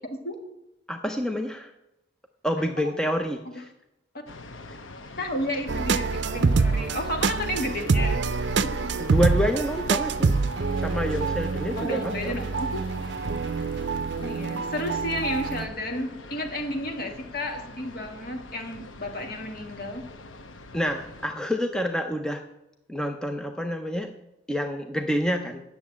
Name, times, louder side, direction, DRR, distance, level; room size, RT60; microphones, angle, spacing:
voice 1, 0.9-1.7 2.4-3.7 4.7-4.8 9.0-10.4 10.8-12.4 20.7-22.4 22.9-24.1 24.5-25.6, equal, 5° left, 5 dB, 0.5 m, -28 dB
sound 1, 4.3-21.3, left 2 dB, 90° left, 0.9 m, -44 dB
voice 2, 5.2-8.2 8.6-8.7 11.8-12.9 14.2-20.0, left 1 dB, 50° left, 3 dB, 1.9 m, -32 dB
sound 2, 5.7-15.7, right 4 dB, 65° right, 0.5 m, -26 dB
9.3 x 7.1 x 8.6 m, 0.91 s
head